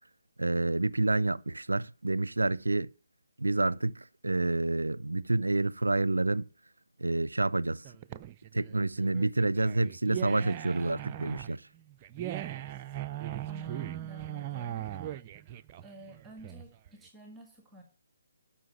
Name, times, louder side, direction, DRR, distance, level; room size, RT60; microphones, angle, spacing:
voice 1, 0.4-2.9 3.4-6.5 7.0-7.8 8.5-11.6, right 2 dB, 75° right, 0.5 m, -28 dB
sound 1, 7.8-16.9, right 12 dB, 25° right, 0.5 m, -39 dB
voice 2, 13.5-14.9 15.8-17.8, equal, 5° right, 1.8 m, -50 dB
12.5 x 5.9 x 8.3 m
figure-of-eight pair, 140°, 0 cm